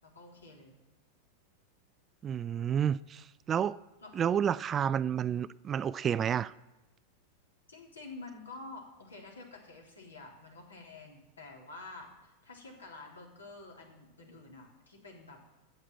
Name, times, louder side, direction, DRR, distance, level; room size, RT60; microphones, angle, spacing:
voice 1, 0.0-0.7 4.0-4.1 7.7-15.4, left 3 dB, 70° left, 3.5 m, -49 dB
voice 2, 2.2-3.8 4.2-6.5, right 8 dB, 25° right, 0.3 m, -30 dB
13.5 x 8.6 x 7.7 m
figure-of-eight pair, 90°, 0 cm